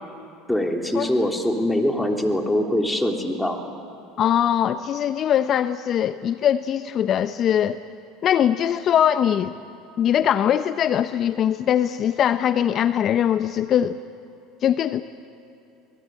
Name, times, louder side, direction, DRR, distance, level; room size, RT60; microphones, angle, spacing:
voice 1, 0.5-3.6, left 1 dB, 5° left, 2 dB, 3.3 m, -23 dB
voice 2, 4.2-7.8 8.2-9.6 10.0-14.0 14.6-15.0, left 10 dB, 45° left, 12 dB, 0.7 m, -21 dB
25.5 x 19.0 x 9.1 m, 2.7 s
hypercardioid pair, 80°, 0 cm